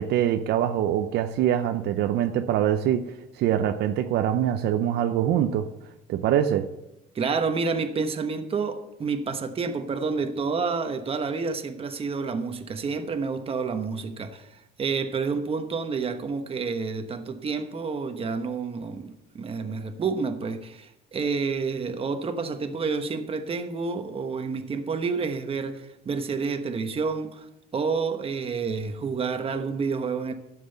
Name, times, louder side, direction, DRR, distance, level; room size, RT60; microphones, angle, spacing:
voice 1, 0.0-5.7 6.1-6.7, right 10 dB, 75° right, 0.6 m, -24 dB
voice 2, 7.1-14.5 14.8-27.5 27.7-30.3, right 5 dB, 35° right, 1.2 m, -29 dB
11.5 x 7.7 x 6.7 m
cardioid pair, 110°, 17 cm